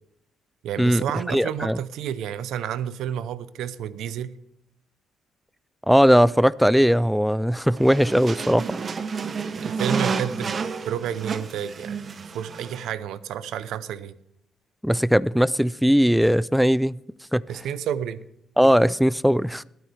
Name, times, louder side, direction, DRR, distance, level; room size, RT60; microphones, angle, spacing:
voice 1, 0.6-4.4 9.5-14.2 17.5-18.2, right 9 dB, 85° right, 0.7 m, -30 dB
voice 2, 1.3-1.8 5.9-8.7 14.8-17.0 17.3-17.4 18.6-19.6, equal, ahead, 0.3 m, -19 dB
sound 1, 7.8-12.9, right 5 dB, 40° right, 0.9 m, -30 dB
21.0 x 9.3 x 3.4 m
cardioid pair, 90°, 0 cm